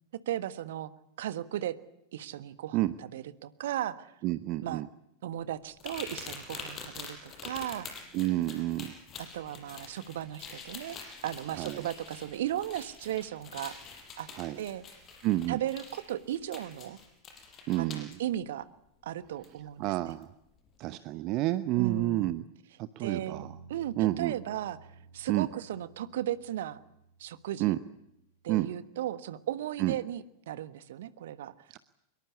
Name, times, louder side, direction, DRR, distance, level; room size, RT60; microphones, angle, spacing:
voice 1, 0.3-0.9 1.2-1.7 2.1-4.1 4.6-4.8 5.2-7.9 9.2-11.0 11.2-13.8 14.2-14.3 14.6-14.8 15.5-17.0 17.8-18.7 19.0-20.1 21.8-22.4 23.0-23.4 23.7-24.8 25.1-26.8 27.2-27.7 28.4-31.5, right 12 dB, 55° right, 14 dB, 1.4 m, -36 dB
voice 2, 4.2-4.9 8.1-8.9 11.5-11.9 14.3-14.6 15.2-15.6 17.7-18.2 19.8-20.3 20.8-22.4 22.8-23.6 24.0-24.3 25.3-25.5 27.6-27.8 28.5-28.7 29.8-29.9 31.7-31.8, right 16 dB, 40° right, 14 dB, 0.9 m, -29 dB
sound 1, 5.8-18.2 19.4-19.5 20.1-20.2, left 5 dB, 30° left, 6.5 m, -46 dB
sound 2, 23.0-28.5, right 4 dB, 90° left, 7.0 m, -53 dB
24.5 x 22.5 x 8.4 m, 0.80 s
figure-of-eight pair, 90°, 0 cm